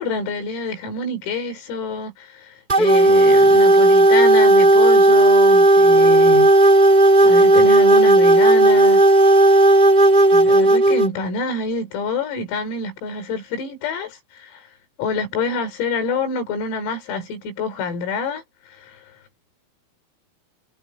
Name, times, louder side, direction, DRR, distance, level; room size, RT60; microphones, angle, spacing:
voice 1, 0.0-6.5 7.2-9.1 10.3-14.7 15.0-19.0, left 3 dB, 90° left, 7.4 m, -27 dB
sound 1, 2.7-11.1, right 2 dB, 10° right, 5.5 m, -13 dB
omnidirectional pair, 5.9 m